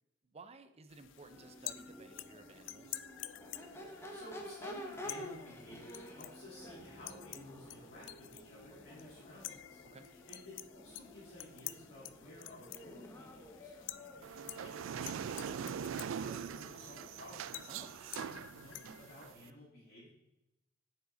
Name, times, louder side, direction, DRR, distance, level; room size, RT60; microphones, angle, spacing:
voice 1, 0.2-3.0 9.8-10.0 17.7-17.9, right 3 dB, 35° right, 10 dB, 0.6 m, -55 dB
sound 1, 0.9-19.3, left 14 dB, 70° left, 0.4 m, -50 dB
Crowd / Race car auto racing / Accelerating revving vroom, 1.1-18.2, equal, 15° left, 1.0 m, -52 dB
voice 2, 3.8-17.7 18.2-20.1, left 1 dB, 55° left, -9 dB, 2.3 m, -54 dB
sound 2, 14.2-19.5, right 7 dB, 90° right, 0.3 m, -42 dB
9.1 x 4.9 x 3.9 m, 0.95 s
head